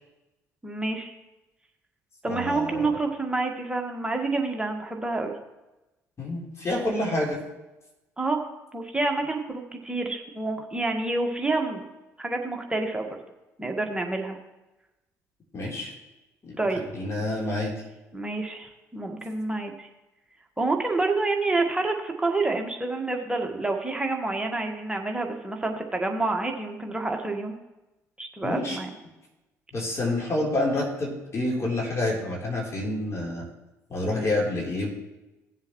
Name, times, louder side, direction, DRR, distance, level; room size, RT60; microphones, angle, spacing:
voice 1, 0.6-1.1 2.2-5.3 8.2-8.4 8.7-11.9 12.2-13.2 13.6-14.4 16.6-16.8 18.1-19.9 20.6-27.6 28.2-28.9 34.1-34.4, right 3 dB, 10° right, 2 dB, 1.7 m, -28 dB
voice 2, 2.3-2.9 6.2-7.4 15.5-15.9 16.4-16.6 16.9-17.7 28.4-28.8 29.7-33.4 33.9-34.9, left 2 dB, 35° left, -3 dB, 3.8 m, -28 dB
17.5 x 7.5 x 3.2 m, 1.0 s
figure-of-eight pair, 50°, 9 cm